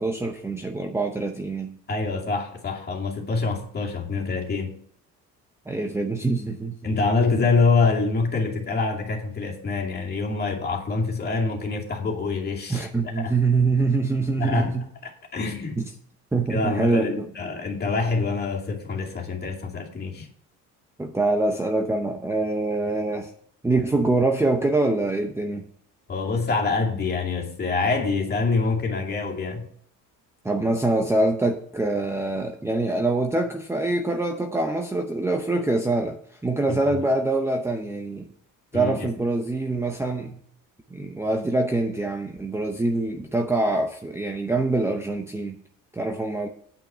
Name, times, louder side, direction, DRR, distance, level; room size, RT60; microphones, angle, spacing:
voice 1, 0.0-1.8 5.7-6.8 12.7-14.9 15.8-15.9 16.3-17.2 21.0-23.3 23.6-25.7 30.4-36.2 36.4-38.3 38.7-40.4 40.9-45.6 45.9-46.5, right 2 dB, 10° right, 0.7 m, -24 dB
voice 2, 1.9-4.7 6.8-12.9 13.2-13.4 14.4-14.7 15.0-15.8 16.5-20.3 26.1-29.7 36.7-37.0 38.7-39.1, left 4 dB, 30° left, 2.4 m, -25 dB
9.1 x 5.8 x 6.8 m
cardioid pair, 115°, 34 cm